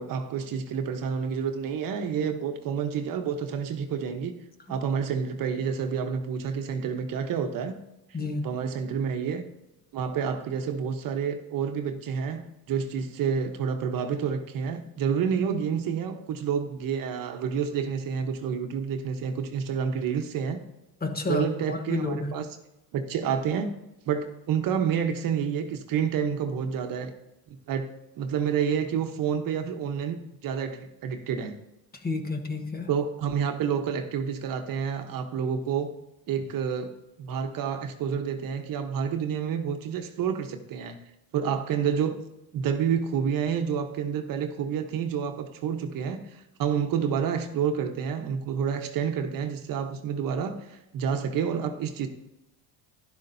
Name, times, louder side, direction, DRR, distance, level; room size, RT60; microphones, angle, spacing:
voice 1, 0.0-4.4 4.7-7.7 8.4-9.4 9.9-20.6 21.3-22.5 22.9-23.7 24.1-27.1 27.5-27.9 28.2-31.6 32.9-35.9 36.3-36.9 37.2-41.0 41.3-42.1 42.5-52.1, right 7 dB, 55° right, 6 dB, 1.1 m, -29 dB
voice 2, 8.1-8.5 21.0-22.4 31.9-32.9, left 3 dB, 20° left, 5 dB, 1.2 m, -30 dB
12.0 x 11.5 x 2.7 m, 0.93 s
supercardioid pair, 110°, 41 cm